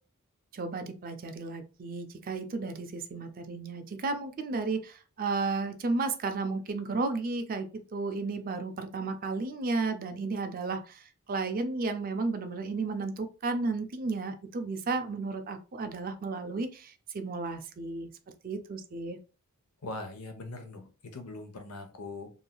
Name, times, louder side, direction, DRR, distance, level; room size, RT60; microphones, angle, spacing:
voice 1, 0.5-18.1 18.4-19.2, right 3 dB, 40° right, 8 dB, 0.4 m, -33 dB
voice 2, 19.8-22.3, left 2 dB, 80° left, 5 dB, 0.8 m, -41 dB
3.1 x 2.6 x 2.3 m, 0.34 s
head